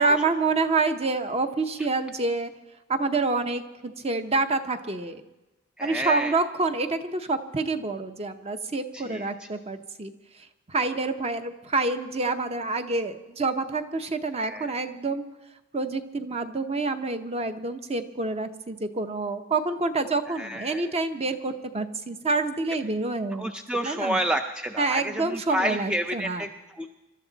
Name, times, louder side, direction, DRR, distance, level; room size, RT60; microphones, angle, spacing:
voice 1, 0.0-2.5 2.9-5.2 5.8-10.1 10.7-15.2 15.7-23.5 23.8-24.2 24.8-26.4, right 3 dB, 30° right, 8 dB, 0.8 m, -27 dB
voice 2, 5.8-6.4 8.9-9.5 14.3-14.7 20.3-21.0 23.3-26.9, equal, 5° right, 5 dB, 0.4 m, -30 dB
24.0 x 12.5 x 4.0 m, 1.0 s
head